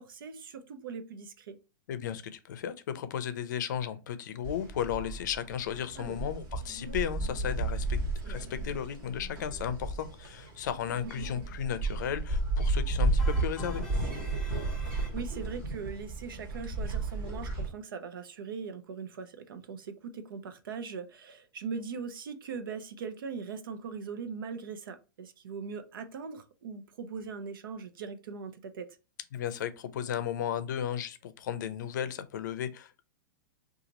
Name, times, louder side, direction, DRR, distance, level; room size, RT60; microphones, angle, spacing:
voice 1, 0.0-1.6 6.0-6.2 8.3-8.5 11.0-11.3 14.8-29.0, right 5 dB, 85° right, 0.7 m, -40 dB
voice 2, 1.9-8.0 8.3-13.8 29.3-33.0, left 9 dB, 60° left, 0.5 m, -34 dB
sound 1, 4.4-17.7, right 2 dB, 35° right, 1.4 m, -33 dB
sound 2, 13.2-15.6, left 3 dB, ahead, 0.6 m, -48 dB
2.9 x 2.4 x 3.9 m
supercardioid pair, 170°, 11 cm